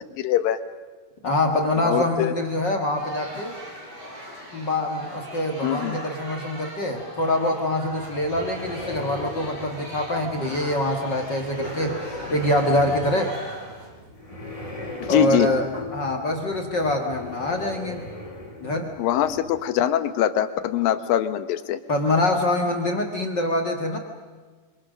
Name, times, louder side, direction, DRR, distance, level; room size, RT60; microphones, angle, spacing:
voice 1, 0.1-0.6 1.8-2.3 5.6-6.0 15.0-15.5 19.0-21.8, left 10 dB, 80° left, 11 dB, 2.8 m, -23 dB
voice 2, 1.2-3.6 4.5-11.9 12.3-13.3 15.1-15.7 15.9-18.0 18.6-18.9 21.9-24.0, left 1 dB, 40° left, 3 dB, 1.8 m, -24 dB
sound 1, 2.9-13.9, equal, 45° right, 8.4 m, -40 dB
sound 2, 7.8-19.6, left 1 dB, 10° left, 3.4 m, -38 dB
26.0 x 25.5 x 6.4 m, 1.4 s
omnidirectional pair, 4.0 m